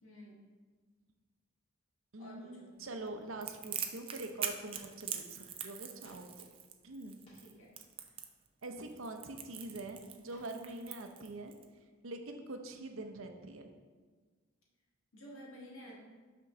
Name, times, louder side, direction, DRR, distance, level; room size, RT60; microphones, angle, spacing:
voice 1, 0.0-0.5 2.2-2.8 7.4-7.7 15.1-16.0, equal, 90° left, -4 dB, 1.7 m, -52 dB
voice 2, 2.1-6.3 6.8-7.2 8.6-11.5 12.0-13.6, right 2 dB, 80° right, 5 dB, 0.7 m, -44 dB
Crackle, 3.4-11.6, right 8 dB, 25° right, 0.3 m, -43 dB
sound 1, 4.7-5.0 5.4-5.5 6.0-6.3 7.0-7.6 8.8-9.3 10.3-10.6 11.0-11.1, equal, 25° left, 1.8 m, -63 dB
5.9 x 3.8 x 6.0 m, 1.4 s
head